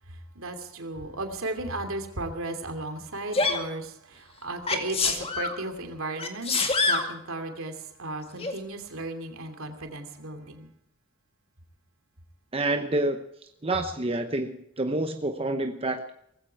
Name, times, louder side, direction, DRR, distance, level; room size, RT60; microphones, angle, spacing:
voice 1, 0.3-10.7, right 2 dB, 65° right, 6 dB, 2.8 m, -35 dB
Sneeze, 3.3-3.6 4.7-5.5 6.2-7.1 8.4-8.5, left 3 dB, 25° left, 2.0 m, -25 dB
voice 2, 12.5-13.2 13.6-16.0, right 2 dB, 25° right, 6 dB, 0.9 m, -28 dB
19.0 x 15.5 x 4.7 m, 0.77 s
head